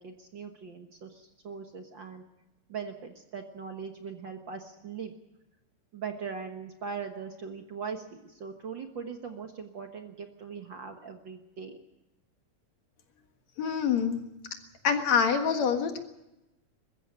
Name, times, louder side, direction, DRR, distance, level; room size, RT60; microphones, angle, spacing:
voice 1, 0.0-2.2 2.7-5.1 5.9-11.8, right 6 dB, 50° right, 5 dB, 1.7 m, -40 dB
voice 2, 13.6-14.2 14.8-16.0, left 7 dB, 65° left, 6 dB, 2.9 m, -25 dB
21.5 x 15.0 x 8.9 m, 0.97 s
omnidirectional pair, 3.4 m